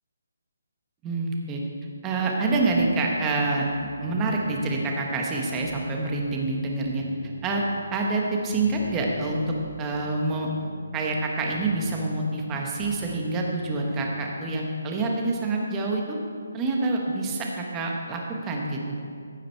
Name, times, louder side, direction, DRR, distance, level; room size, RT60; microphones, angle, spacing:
voice 1, 1.0-1.6 2.0-3.7 4.0-7.0 7.4-7.6 7.9-10.5 10.9-16.2 16.5-19.0, right 2 dB, 10° right, 0 dB, 1.1 m, -27 dB
sound 1, 2.5-14.4, right 2 dB, 60° right, 2.6 m, -43 dB
15.0 x 7.4 x 4.5 m, 2.3 s
hypercardioid pair, 170°, 0 cm